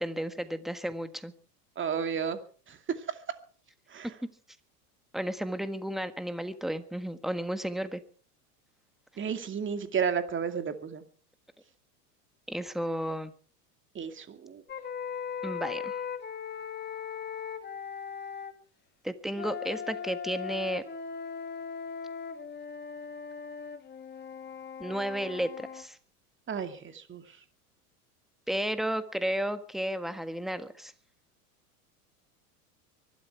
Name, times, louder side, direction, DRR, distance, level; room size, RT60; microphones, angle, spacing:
voice 1, 0.0-1.3 5.1-8.0 12.5-13.3 15.4-16.0 19.0-20.8 24.8-26.0 28.5-30.9, equal, ahead, 10 dB, 1.5 m, -33 dB
voice 2, 1.8-2.4 2.7-2.8 3.9-4.1 9.2-11.0 13.9-14.6 26.5-27.2, right 6 dB, 25° right, 8 dB, 2.4 m, -32 dB
sound 1, 14.7-18.5 19.3-25.9, left 7 dB, 20° left, 2.2 m, -39 dB
24.0 x 12.5 x 4.7 m, 0.42 s
hypercardioid pair, 105°, 46 cm